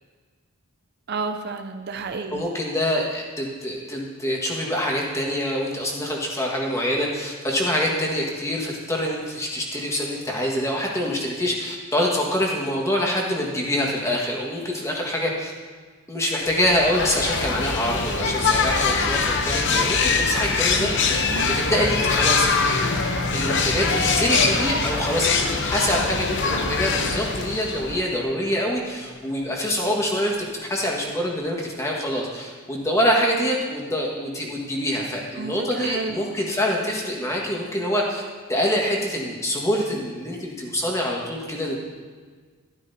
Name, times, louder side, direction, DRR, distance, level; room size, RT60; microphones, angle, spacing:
voice 1, 1.1-2.4 20.7-21.0 21.3-21.6 35.4-36.5 37.8-37.9, right 4 dB, 50° right, 7 dB, 0.5 m, -32 dB
voice 2, 2.3-15.5 16.1-22.9 23.3-38.2 38.5-41.8, equal, 15° left, -2 dB, 1.6 m, -25 dB
sound 1, 16.5-28.1, left 4 dB, 55° left, 0.8 m, -23 dB
sound 2, 20.7-31.6, equal, 85° right, 2.7 m, -37 dB
12.5 x 12.5 x 2.8 m, 1.5 s
head